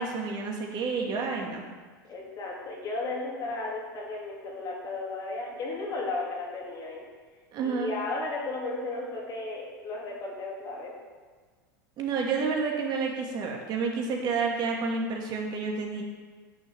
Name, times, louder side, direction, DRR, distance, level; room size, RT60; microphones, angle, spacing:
voice 1, 0.0-1.6 7.5-8.0 12.0-16.0, right 4 dB, 40° right, 1 dB, 2.5 m, -30 dB
voice 2, 2.0-7.0 7.6-10.9, left 2 dB, 35° left, -3 dB, 3.4 m, -34 dB
10.5 x 6.7 x 7.0 m, 1.5 s
figure-of-eight pair, 85°, 11 cm